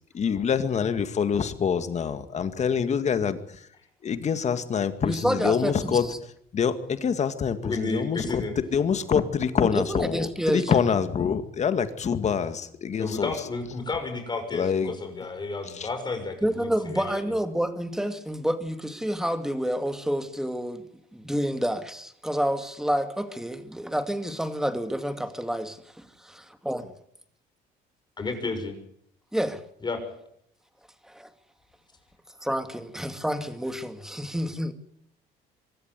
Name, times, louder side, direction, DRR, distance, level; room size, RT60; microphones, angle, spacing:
voice 1, 0.1-3.7 4.0-6.1 6.5-13.3 14.5-15.0 15.6-15.9, left 7 dB, 40° left, 2.0 m, -26 dB
voice 2, 5.0-6.0 9.7-10.8 16.4-20.9 21.1-26.1 26.7-26.8 29.3-29.6 31.0-31.3 32.4-34.7, equal, 5° right, 2.4 m, -28 dB
voice 3, 7.6-8.5 13.0-17.2 28.2-28.7 29.8-30.0, left 3 dB, 25° left, 6.1 m, -32 dB
24.0 x 13.5 x 9.6 m
cardioid pair, 110°, 17 cm